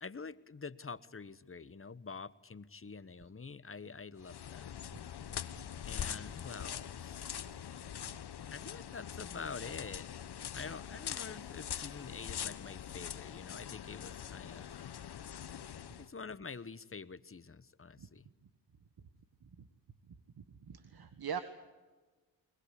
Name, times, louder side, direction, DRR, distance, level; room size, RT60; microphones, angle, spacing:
voice 1, 0.0-4.8 5.9-7.5 8.5-10.1 10.5-14.7 16.0-18.3, left 5 dB, 30° left, 16 dB, 1.2 m, -47 dB
sound 1, 4.2-16.1, left 9 dB, 60° left, 1.1 m, -43 dB
voice 2, 20.4-21.4, right 7 dB, 55° right, 10 dB, 1.5 m, -43 dB
21.5 x 21.0 x 8.4 m, 1.3 s
supercardioid pair, 45°, 44 cm